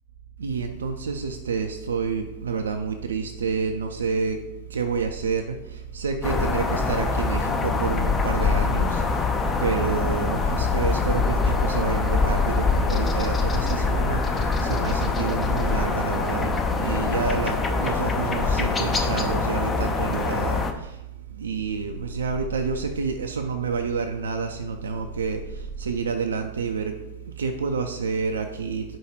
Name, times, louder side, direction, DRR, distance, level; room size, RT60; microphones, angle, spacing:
voice 1, 0.4-4.4 4.7-9.2 9.6-20.9 21.4-25.4 25.8-27.0 27.4-28.8, right 5 dB, 70° right, 5 dB, 0.3 m, -28 dB
sound 1, 6.2-20.7, left 4 dB, 20° left, 0.4 m, -24 dB
4.9 x 2.3 x 4.5 m, 0.93 s
figure-of-eight pair, 90°, 0 cm